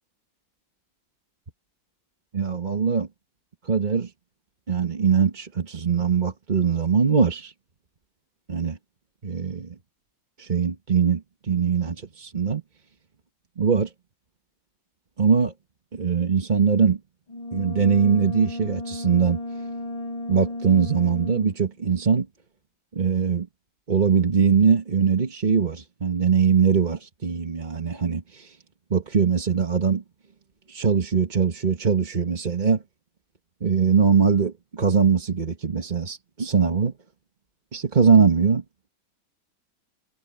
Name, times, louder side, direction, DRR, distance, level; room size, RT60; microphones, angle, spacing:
voice 1, 2.3-3.1 3.6-4.1 4.7-7.5 8.5-8.8 9.2-9.7 10.4-12.6 13.6-13.9 15.2-15.5 15.9-17.0 17.5-19.4 20.3-22.3 22.9-23.5 23.9-28.6 28.9-30.0 30.7-32.8 33.6-36.9 37.7-38.6, right 6 dB, 25° right, 1.2 m, -21 dB
Brass instrument, 17.3-21.7, left 1 dB, 85° left, 6.2 m, -34 dB
omnidirectional pair, 2.1 m